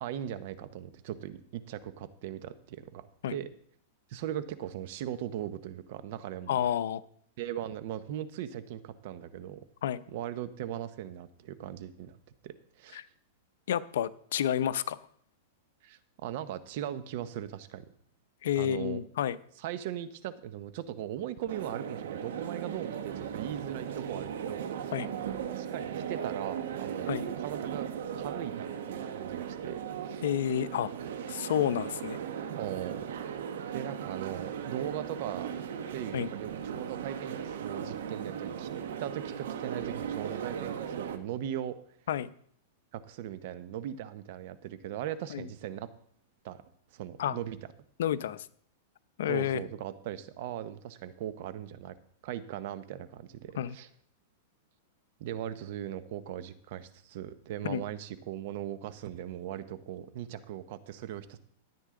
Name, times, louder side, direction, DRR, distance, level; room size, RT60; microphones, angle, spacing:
voice 1, 0.0-3.5 4.1-6.6 7.4-9.6 10.1-12.2 12.4-13.0 15.8-17.9 18.6-19.0 19.6-24.9 25.5-27.1 27.4-27.9 28.1-30.2 32.6-33.0 33.7-35.5 35.9-38.7 39.0-41.8 42.9-45.9 46.4-46.6 46.9-47.6 49.3-52.0 52.2-53.9 55.2-61.4, right 11 dB, 55° right, 12 dB, 1.0 m, -39 dB
voice 2, 6.5-7.0 9.8-10.0 12.9-13.1 13.7-15.0 18.4-19.4 24.9-25.1 27.1-27.3 30.2-30.9 31.3-32.2 36.1-36.3 42.1-42.3 45.3-45.5 47.2-47.4 48.0-48.5 49.2-49.6 53.6-53.8 57.6-57.8, left 10 dB, 75° left, 15 dB, 0.6 m, -30 dB
sound 1, 21.5-41.2, right 8 dB, 75° right, 1.1 m, -37 dB
13.5 x 9.1 x 3.8 m, 0.62 s
supercardioid pair, 145°, 0 cm